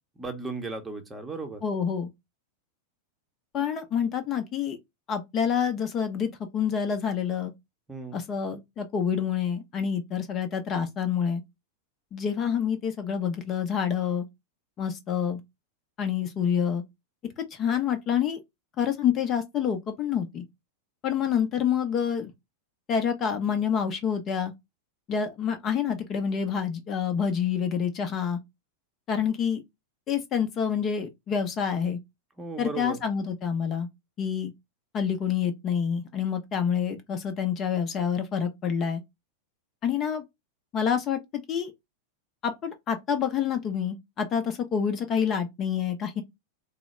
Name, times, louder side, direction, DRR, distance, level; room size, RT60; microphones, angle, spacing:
voice 1, 0.2-1.6 7.9-8.2 32.4-33.0, right 3 dB, 10° right, 0.9 m, -35 dB
voice 2, 1.6-2.1 3.5-4.8 5.1-7.5 8.1-11.4 12.1-14.3 14.8-15.4 16.0-16.8 17.4-18.4 18.8-20.4 21.0-22.3 22.9-24.5 25.1-28.4 29.1-29.6 30.1-32.0 32.6-33.9 34.2-34.5 34.9-39.0 39.8-40.2 40.7-41.7 42.4-46.2, left 7 dB, 30° left, 0.7 m, -27 dB
3.8 x 2.1 x 3.0 m
figure-of-eight pair, 90°, 0 cm